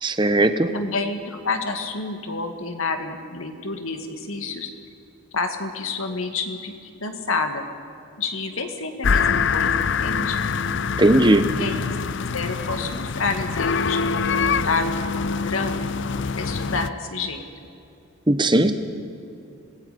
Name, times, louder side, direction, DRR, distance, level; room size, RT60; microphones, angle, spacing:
voice 1, 0.0-0.7 11.0-11.5 18.3-18.7, right 1 dB, 20° right, 10 dB, 1.0 m, -17 dB
voice 2, 0.7-4.7 5.3-7.6 8.2-10.4 11.6-12.1 12.3-15.8 16.4-17.4, left 3 dB, 75° left, 6 dB, 2.0 m, -29 dB
sound 1, 9.0-16.9, left 5 dB, 55° left, 0.5 m, -24 dB
26.0 x 20.0 x 5.2 m, 2.7 s
head